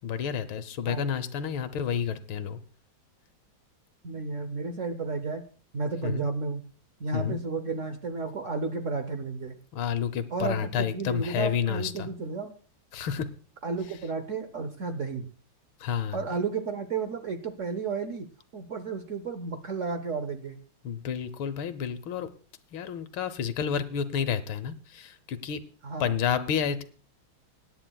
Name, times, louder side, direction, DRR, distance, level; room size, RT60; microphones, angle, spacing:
voice 1, 0.0-2.6 6.0-6.3 7.1-7.4 9.7-12.1 12.9-13.3 15.8-16.2 20.8-22.3 22.7-25.6 26.0-26.8, left 7 dB, 85° left, 11 dB, 1.7 m, -30 dB
voice 2, 4.0-5.4 5.7-6.6 7.0-9.6 10.3-12.5 13.6-15.3 16.1-18.3 18.5-20.6 25.8-26.1, right 4 dB, 55° right, 8 dB, 0.9 m, -32 dB
24.0 x 10.0 x 2.3 m, 0.40 s
omnidirectional pair, 2.2 m